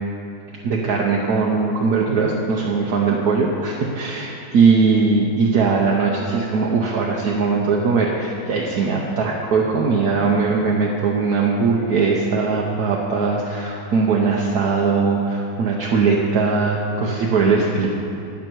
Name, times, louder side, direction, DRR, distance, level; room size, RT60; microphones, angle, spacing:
voice 1, 0.6-17.9, right 4 dB, 60° right, -2 dB, 1.2 m, -20 dB
13.0 x 9.3 x 4.6 m, 2.7 s
omnidirectional pair, 2.3 m